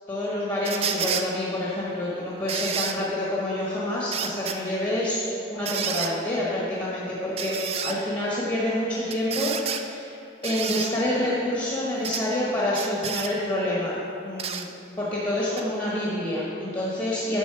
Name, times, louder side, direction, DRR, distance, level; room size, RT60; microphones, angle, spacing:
voice 1, 0.1-5.2 5.5-10.1 10.4-14.0 14.2-14.7 15.0-17.4, left 1 dB, 20° left, -7 dB, 1.0 m, -27 dB
sound 1, 0.6-1.3 2.5-3.0 4.1-4.6 5.7-6.1 7.4-8.0 9.1-9.8 10.4-10.9 12.0-12.2 12.7-13.3 14.4-14.7 15.6-15.7, right 7 dB, 30° right, 0.3 m, -30 dB
9.2 x 4.0 x 5.9 m, 2.8 s
head